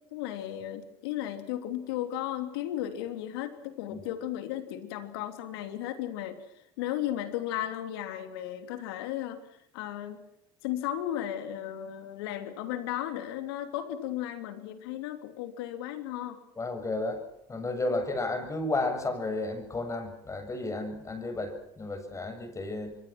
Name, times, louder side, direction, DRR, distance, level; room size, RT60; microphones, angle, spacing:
voice 1, 0.1-6.4 6.8-9.4 9.7-10.2 10.6-16.4, left 12 dB, 80° left, 9 dB, 3.1 m, -35 dB
voice 2, 16.6-17.2 17.5-23.0, left 2 dB, 25° left, 8 dB, 7.1 m, -32 dB
27.0 x 22.5 x 6.1 m, 0.77 s
hypercardioid pair, 80°, 13 cm